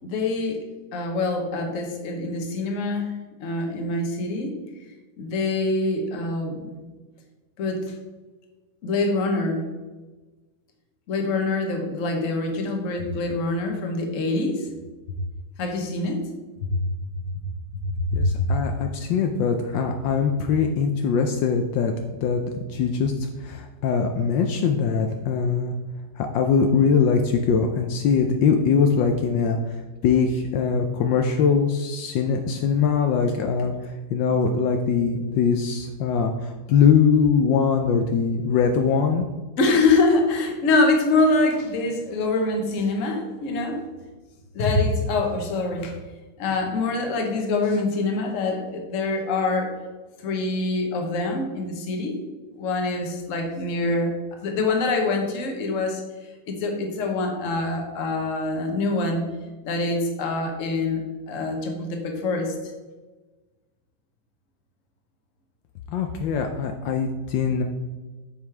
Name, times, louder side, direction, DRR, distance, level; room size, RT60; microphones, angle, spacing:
voice 1, 0.0-0.6 0.9-3.1 3.4-4.5 5.2-6.7 7.6-7.9 8.8-9.6 11.1-14.7 15.6-16.3 16.6-16.7 18.1-18.5 39.6-43.8 44.5-46.0 46.4-49.7 50.2-52.2 52.5-56.0 56.5-59.2 59.6-62.5, left 3 dB, 50° left, 3 dB, 1.2 m, -25 dB
voice 2, 18.1-22.4 22.7-23.1 23.4-25.7 26.2-39.3 65.9-67.6, left 6 dB, 75° left, 4 dB, 1.2 m, -22 dB
8.1 x 5.3 x 3.3 m, 1.2 s
omnidirectional pair, 2.1 m